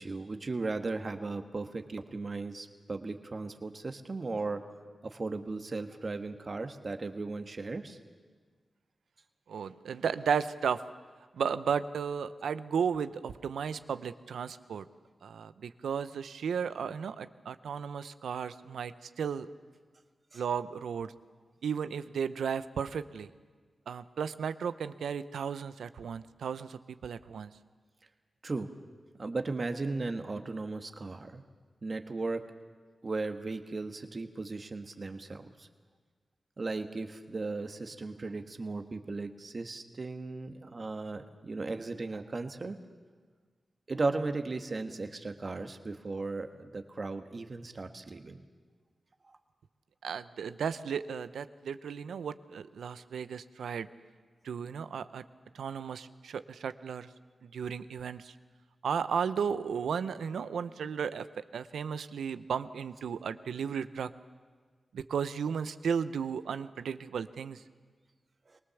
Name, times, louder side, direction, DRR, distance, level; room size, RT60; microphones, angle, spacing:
voice 1, 0.0-4.6 5.0-8.0 20.3-20.4 28.4-28.7 29.2-31.4 31.8-32.5 33.0-35.7 36.6-42.8 43.9-48.4 68.5-68.6, right 3 dB, 50° right, 7 dB, 1.5 m, -36 dB
voice 2, 9.5-10.8 11.3-14.8 15.2-19.5 20.3-21.1 21.6-23.3 23.9-27.5 50.0-53.9 54.4-55.2 55.5-57.1 57.4-58.3 58.8-64.1 64.9-67.6, right 7 dB, 90° right, 13 dB, 0.7 m, -34 dB
23.5 x 19.0 x 7.1 m, 1.5 s
cardioid pair, 45°, 0 cm